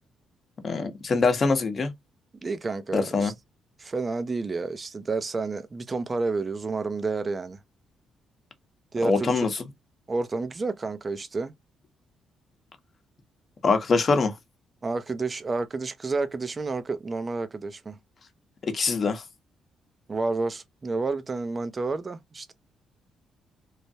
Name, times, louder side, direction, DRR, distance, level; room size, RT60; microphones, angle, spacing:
voice 1, 0.6-1.9 2.9-3.3 9.0-9.5 13.6-14.3 18.7-19.2, left 4 dB, 45° left, 0.9 m, -23 dB
voice 2, 2.4-3.3 3.8-7.6 8.9-9.3 10.1-11.5 14.8-18.0 20.1-22.5, right 3 dB, 30° right, 0.5 m, -30 dB
3.1 x 2.2 x 2.7 m
cardioid pair, 90°, 0 cm